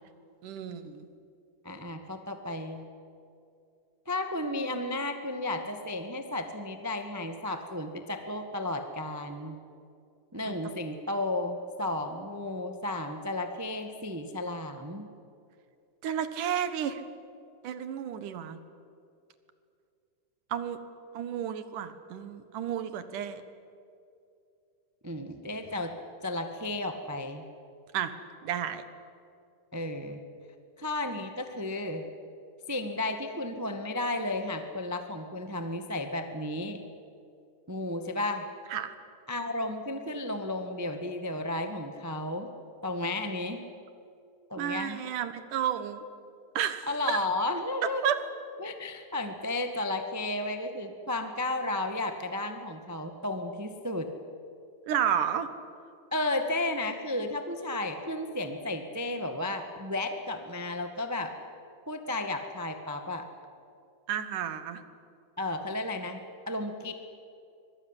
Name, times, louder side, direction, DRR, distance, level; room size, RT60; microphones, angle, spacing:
voice 1, 0.4-1.1 10.5-10.6 16.0-17.0 17.6-18.6 20.5-20.8 21.1-23.4 27.9-28.1 28.4-28.8 38.7-38.9 44.6-46.0 46.6-47.2 48.0-48.2 54.8-55.5 64.1-64.8, right 9 dB, 75° right, 11 dB, 2.9 m, -31 dB
voice 2, 1.6-2.9 4.0-9.6 10.3-15.1 25.0-25.9 26.2-27.4 29.7-30.2 30.8-32.1 32.7-36.8 37.7-38.5 39.3-42.5 42.8-43.6 44.5-45.0 46.9-48.1 48.6-54.1 56.1-61.3 61.9-63.3 65.4-66.9, left 2 dB, 20° right, 6 dB, 0.4 m, -33 dB
24.5 x 21.5 x 9.9 m, 2.5 s
omnidirectional pair, 3.7 m